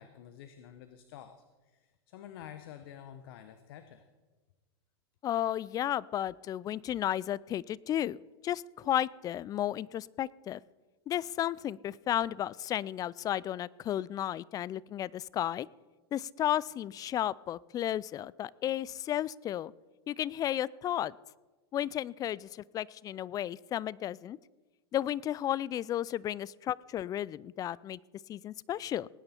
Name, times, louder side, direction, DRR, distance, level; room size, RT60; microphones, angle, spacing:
voice 1, 0.0-4.1, left 10 dB, 65° left, 10 dB, 1.0 m, -49 dB
voice 2, 5.2-10.6 11.1-15.7 16.1-19.7 20.1-21.2 21.7-24.4 24.9-28.0 28.3-29.1, left 11 dB, 30° left, 23 dB, 0.3 m, -33 dB
19.0 x 9.6 x 4.4 m, 1.2 s
hypercardioid pair, 105°, 13 cm